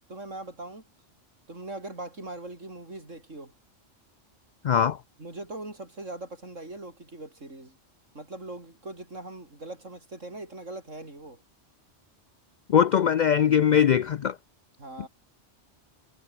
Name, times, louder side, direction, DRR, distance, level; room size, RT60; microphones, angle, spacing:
voice 1, 0.1-0.8 1.5-3.5 5.2-7.7 8.1-11.4 14.8-15.1, right 2 dB, 80° right, 6.0 m, -40 dB
voice 2, 4.6-5.0 12.7-14.4, left 8 dB, 70° left, 0.4 m, -21 dB
omnidirectional pair, 1.3 m